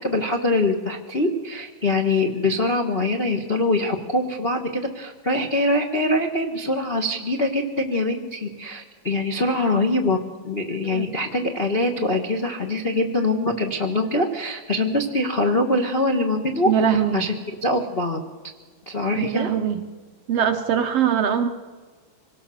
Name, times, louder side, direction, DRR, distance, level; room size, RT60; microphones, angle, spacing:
voice 1, 0.0-10.2 10.4-18.2 18.9-19.5, left 2 dB, 60° left, 1 dB, 0.6 m, -23 dB
voice 2, 16.7-17.3 19.2-19.8 20.3-21.5, right 8 dB, 65° right, 6 dB, 1.6 m, -22 dB
25.0 x 18.0 x 7.0 m, 1.4 s
omnidirectional pair, 3.7 m